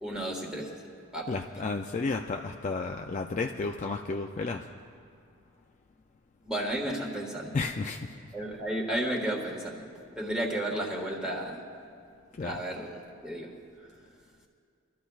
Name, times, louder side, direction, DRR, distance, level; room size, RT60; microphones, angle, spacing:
voice 1, 0.0-1.4 6.4-7.6 8.3-9.8 10.1-11.6 12.4-13.5 13.8-13.9, right 1 dB, 5° right, -2 dB, 1.5 m, -33 dB
voice 2, 1.3-4.7 7.5-8.1 12.3-12.6, left 3 dB, 35° left, 3 dB, 0.3 m, -32 dB
25.5 x 13.0 x 2.3 m, 2.3 s
head